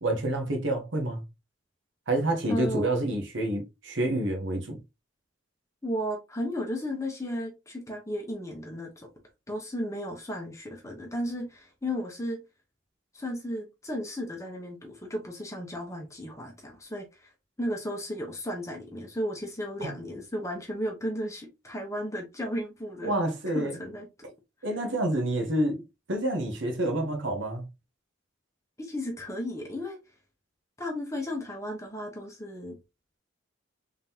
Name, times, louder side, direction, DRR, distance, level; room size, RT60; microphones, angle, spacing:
voice 1, 0.0-1.2 2.1-4.8 19.8-19.9 23.0-23.7 24.6-25.8 26.1-27.6, right 1 dB, 70° right, 1.1 m, -28 dB
voice 2, 2.5-3.0 5.8-9.1 9.5-12.4 13.1-17.1 17.6-23.1 23.5-24.1 28.8-30.0 30.8-32.8, equal, 15° left, 0.9 m, -34 dB
3.7 x 3.6 x 2.8 m
head